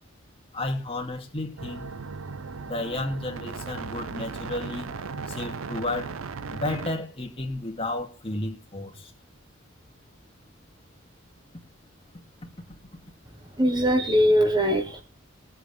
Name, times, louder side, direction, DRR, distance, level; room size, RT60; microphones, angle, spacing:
voice 1, 0.5-1.9 2.7-4.9 5.3-6.1 6.5-9.1, left 2 dB, 30° left, 2.5 m, -32 dB
sound 1, 1.6-6.9, right 4 dB, 85° right, 0.6 m, -36 dB
voice 2, 13.6-15.0, equal, 20° right, 1.2 m, -21 dB
21.0 x 8.0 x 3.3 m
head